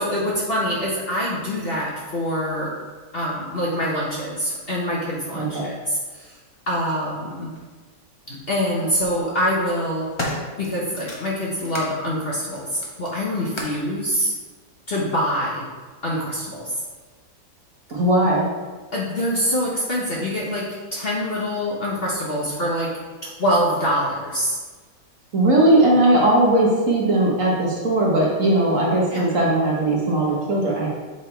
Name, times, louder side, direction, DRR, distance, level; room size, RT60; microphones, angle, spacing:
voice 1, 0.0-2.7 3.1-6.3 6.7-7.6 8.3-10.1 10.6-14.3 14.9-15.6 16.0-16.7 18.9-22.9 23.2-24.6 29.1-29.2, equal, 40° left, -5 dB, 1.0 m, -25 dB
voice 2, 5.4-5.7 17.9-18.5 25.3-30.9, right 1 dB, 50° right, -3 dB, 1.5 m, -18 dB
sound 1, 7.5-7.6 8.7-9.1 9.6-11.9 12.4-13.9 14.7-14.8, left 1 dB, 25° left, 0.6 m, -34 dB
6.9 x 3.6 x 4.3 m, 1.4 s
omnidirectional pair, 1.9 m